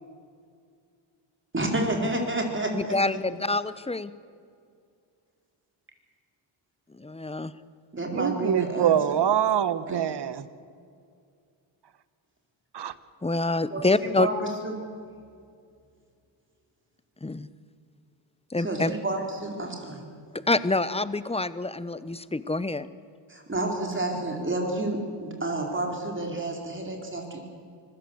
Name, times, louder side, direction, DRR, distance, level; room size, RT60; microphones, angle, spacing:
voice 1, 1.5-3.0 7.9-9.0 9.9-10.0 13.7-14.3 14.6-14.8 18.6-20.0 23.3-27.4, right 2 dB, 25° right, 1 dB, 4.4 m, -30 dB
voice 2, 2.7-4.1 6.9-7.5 13.2-14.3 17.2-17.5 18.5-18.9 20.3-22.9, left 2 dB, 10° left, 15 dB, 0.9 m, -26 dB
voice 3, 8.1-10.5 12.7-12.9, right 9 dB, 55° right, 15 dB, 1.2 m, -24 dB
25.5 x 16.0 x 7.9 m, 2.3 s
cardioid pair, 75°, 49 cm